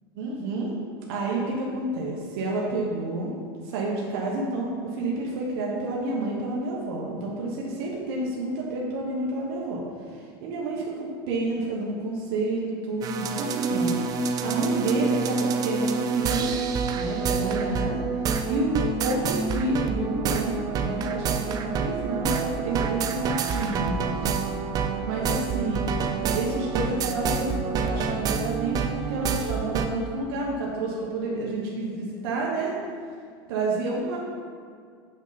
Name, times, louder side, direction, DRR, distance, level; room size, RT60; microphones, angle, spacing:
voice 1, 0.2-0.7 1.1-3.3 3.6-9.8 10.1-13.9 14.4-16.5 16.9-18.0 18.5-24.4 25.0-25.8 26.3-32.7 33.5-34.2, right 2 dB, 70° right, -3 dB, 1.2 m, -29 dB
sound 1, 13.0-29.9, right 5 dB, 30° right, 0.4 m, -27 dB
6.5 x 6.0 x 4.0 m, 2.1 s
supercardioid pair, 145°, 13 cm